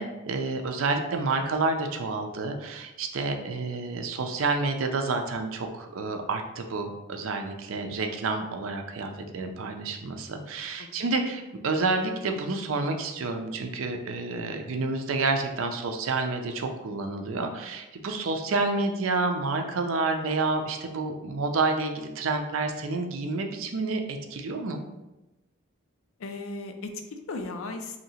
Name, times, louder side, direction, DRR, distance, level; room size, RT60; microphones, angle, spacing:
voice 1, 0.0-24.8, right 3 dB, 75° right, 4 dB, 0.5 m, -29 dB
voice 2, 26.2-28.0, left 3 dB, 80° left, 6 dB, 0.5 m, -36 dB
2.8 x 2.8 x 4.1 m, 1.0 s
head